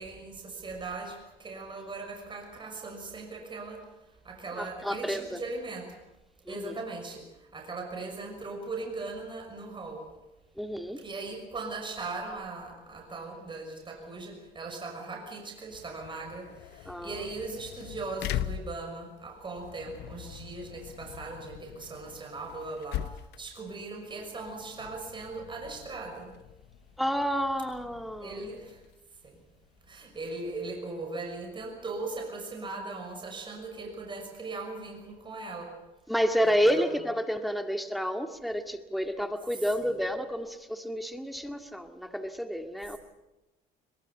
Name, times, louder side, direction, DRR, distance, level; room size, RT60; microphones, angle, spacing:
voice 1, 0.0-3.9 4.2-6.0 6.5-10.1 11.0-26.4 28.2-28.8 29.2-29.4 29.9-35.7 36.5-36.9 39.8-40.0, right 3 dB, 30° right, 2 dB, 6.1 m, -39 dB
voice 2, 4.5-5.4 6.5-6.7 10.6-11.0 16.9-17.2 27.0-28.5 36.1-43.0, equal, ahead, 7 dB, 1.9 m, -30 dB
sound 1, 15.5-30.9, left 12 dB, 85° left, 0.8 m, -42 dB
22.0 x 21.5 x 8.4 m, 1.0 s
cardioid pair, 110°, 17 cm